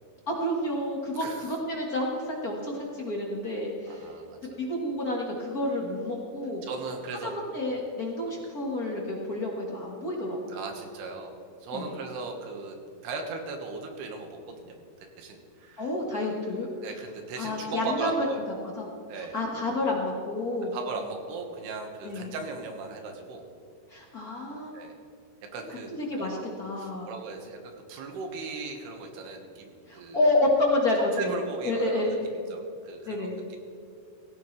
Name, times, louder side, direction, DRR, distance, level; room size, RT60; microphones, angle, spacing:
voice 1, 0.3-4.1 4.6-6.6 7.2-10.6 11.7-11.9 15.8-16.7 17.4-18.3 18.8-18.9 19.2-20.7 22.0-22.3 23.9-24.7 25.9-27.1 29.9-31.4 31.6-32.5 33.0-33.4, left 1 dB, 50° left, -2 dB, 1.0 m, -29 dB
voice 2, 1.2-1.5 3.9-4.4 6.6-7.3 10.5-12.8 13.0-15.9 16.2-16.4 16.8-18.4 19.1-19.4 20.7-23.5 24.7-24.9 25.5-26.5 26.8-30.2 31.2-32.2 32.5-33.6, right 4 dB, 85° right, 3 dB, 3.6 m, -38 dB
17.0 x 15.5 x 3.3 m, 2.6 s
omnidirectional pair, 4.5 m